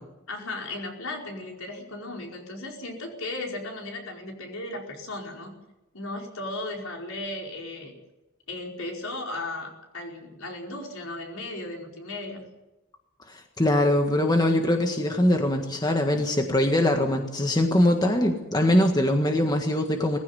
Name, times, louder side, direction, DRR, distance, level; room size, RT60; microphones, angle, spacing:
voice 1, 0.3-5.5 5.9-8.0 8.5-12.4, left 2 dB, 70° left, 0 dB, 5.0 m, -36 dB
voice 2, 13.3-20.2, left 1 dB, 20° left, 4 dB, 1.6 m, -22 dB
20.0 x 15.5 x 9.7 m, 0.99 s
head